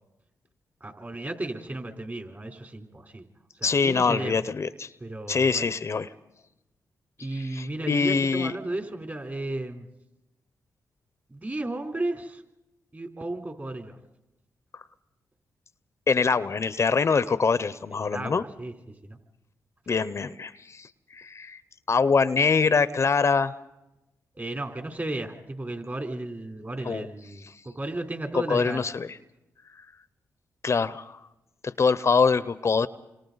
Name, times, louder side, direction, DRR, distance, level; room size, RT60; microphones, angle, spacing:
voice 1, 0.8-3.2 3.6-4.4 5.0-5.7 7.2-9.9 11.3-12.4 12.9-14.0 18.0-18.7 19.0-19.2 24.3-28.9, right 2 dB, 30° right, 4 dB, 3.7 m, -34 dB
voice 2, 3.6-4.9 5.3-6.1 7.5-8.6 16.1-18.4 19.9-20.9 21.1-21.6 21.9-23.5 26.8-27.1 28.3-29.1 30.6-31.2 31.6-32.9, left 5 dB, 50° left, 15 dB, 0.7 m, -24 dB
29.0 x 26.0 x 4.0 m, 0.93 s
cardioid pair, 55°, 6 cm